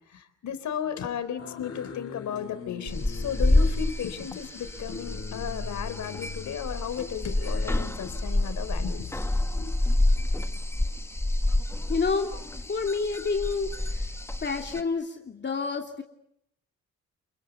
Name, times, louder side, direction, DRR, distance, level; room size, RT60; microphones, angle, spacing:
voice 1, 0.1-9.8, left 8 dB, 70° left, 11 dB, 4.0 m, -35 dB
sound 1, 1.4-7.8, left 7 dB, 55° left, 5.5 m, -43 dB
sound 2, 2.9-14.8, left 1 dB, 10° left, 1.5 m, -28 dB
voice 2, 11.9-14.1 14.4-16.0, left 4 dB, 35° left, 3 dB, 2.9 m, -29 dB
30.0 x 22.0 x 8.3 m, 0.77 s
cardioid pair, 90°, 30 cm